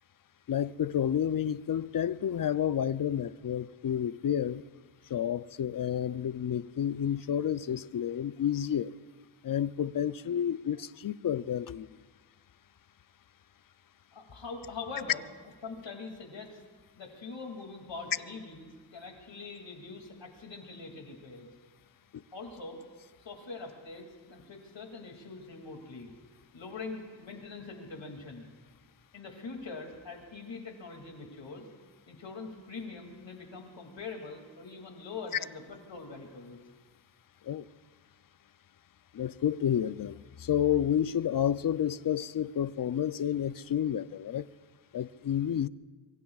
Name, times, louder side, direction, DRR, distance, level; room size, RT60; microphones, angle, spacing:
voice 1, 0.5-4.6 5.1-8.9 9.4-11.9 22.1-22.2 37.4-37.7 39.1-44.5 44.9-45.7, left 9 dB, 50° left, 0.5 m, -30 dB
voice 2, 14.1-15.2 15.6-16.6 17.0-21.5 22.3-22.8 23.2-26.1 26.5-28.5 29.1-31.6 32.1-36.6, left 4 dB, 75° left, 2.6 m, -43 dB
25.0 x 23.0 x 2.4 m
wide cardioid pair, 80°, 45 cm